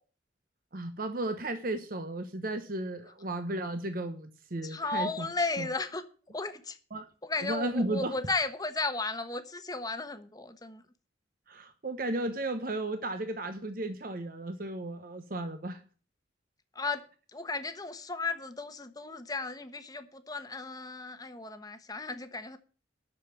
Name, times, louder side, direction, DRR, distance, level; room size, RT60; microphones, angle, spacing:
voice 1, 0.7-5.3 5.6-5.7 6.9-7.1 7.4-8.2 11.5-15.8, right 2 dB, 50° right, 1.0 m, -34 dB
voice 2, 4.6-6.0 6.3-6.8 7.2-10.8 16.7-17.0 17.3-22.6, left 3 dB, 20° left, 1.1 m, -35 dB
11.0 x 6.9 x 8.4 m
head